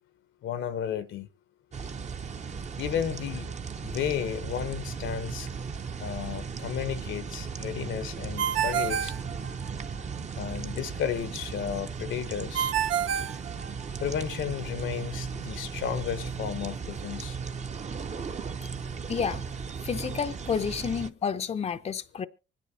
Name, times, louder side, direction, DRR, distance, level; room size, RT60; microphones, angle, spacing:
voice 1, 0.4-1.3 2.8-3.5 3.8-5.5 6.0-9.1 10.4-12.7 14.0-17.4, left 9 dB, 75° left, 1.0 m, -33 dB
sound 1, 1.7-21.1, right 5 dB, 35° right, 0.8 m, -36 dB
Ringtone, 8.4-10.0 12.5-14.2, right 9 dB, 75° right, 0.8 m, -29 dB
voice 2, 19.1-19.4 19.8-22.3, left 6 dB, 35° left, 0.6 m, -30 dB
24.5 x 10.5 x 2.8 m
cardioid pair, 90°, 20 cm